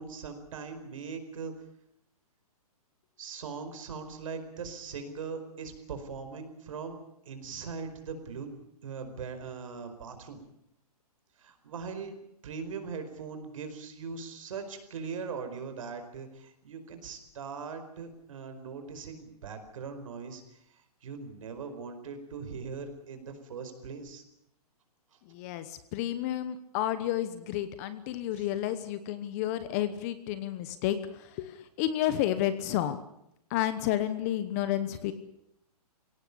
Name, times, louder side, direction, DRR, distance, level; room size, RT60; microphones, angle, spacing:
voice 1, 0.0-1.5 3.2-7.0 7.2-8.5 8.8-10.4 11.4-12.1 12.4-24.2 28.4-28.5, right 5 dB, 55° right, 8 dB, 4.8 m, -40 dB
voice 2, 25.3-33.0 33.5-35.1, left 12 dB, 25° left, 12 dB, 1.0 m, -31 dB
22.5 x 17.5 x 8.5 m, 0.78 s
hypercardioid pair, 165°, 20 cm